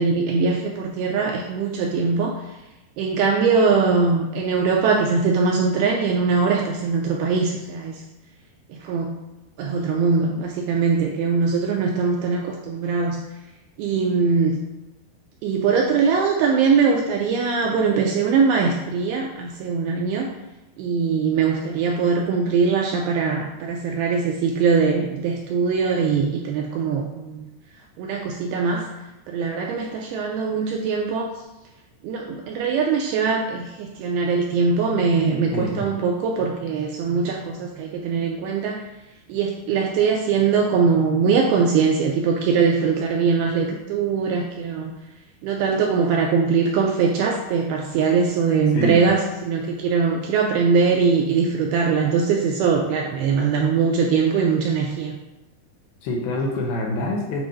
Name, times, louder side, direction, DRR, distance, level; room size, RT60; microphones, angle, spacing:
voice 1, 0.0-2.3 3.0-8.0 8.7-9.2 9.6-13.2 13.8-14.6 15.4-20.3 20.8-27.5 28.0-28.9 29.3-31.3 32.0-38.8 39.3-44.9 45.4-55.2, right 5 dB, 80° right, 0 dB, 2.2 m, -21 dB
voice 2, 35.5-35.9 48.7-49.0 56.0-57.4, left 2 dB, 75° left, -1 dB, 2.5 m, -25 dB
7.6 x 2.6 x 5.5 m, 1.0 s
omnidirectional pair, 4.9 m